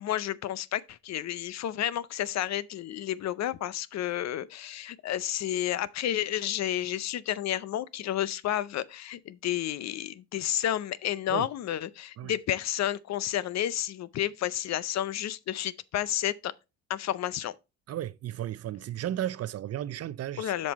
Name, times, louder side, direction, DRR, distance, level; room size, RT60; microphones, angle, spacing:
voice 1, 0.0-16.5 16.9-17.6 20.4-20.7, left 12 dB, 60° left, 0.6 m, -31 dB
voice 2, 17.9-20.5, right 12 dB, 55° right, 0.5 m, -34 dB
7.4 x 5.4 x 4.1 m
cardioid pair, 90°, 30 cm